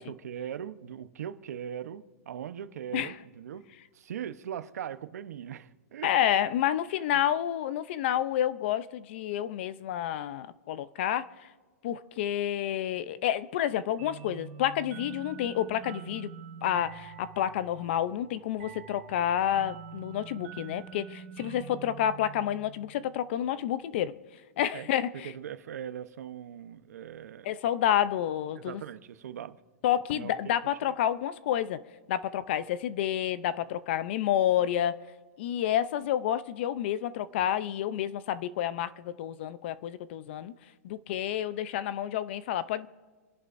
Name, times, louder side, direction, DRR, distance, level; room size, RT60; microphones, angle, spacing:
voice 1, 0.0-3.7 3.9-6.1 7.1-7.2 24.7-24.9 25.1-27.5 28.5-29.6 30.1-30.3 30.9-31.0, right 9 dB, 70° right, 1.0 m, -40 dB
voice 2, 6.0-11.3 11.8-16.3 16.6-24.2 24.6-25.3 27.4-28.8 29.8-31.8 32.1-35.0 35.4-40.5 40.8-42.9, left 11 dB, 45° left, 0.6 m, -29 dB
sound 1, 14.0-23.3, right 6 dB, 55° right, 2.3 m, -46 dB
28.0 x 11.0 x 2.6 m
hypercardioid pair, 165°, 9 cm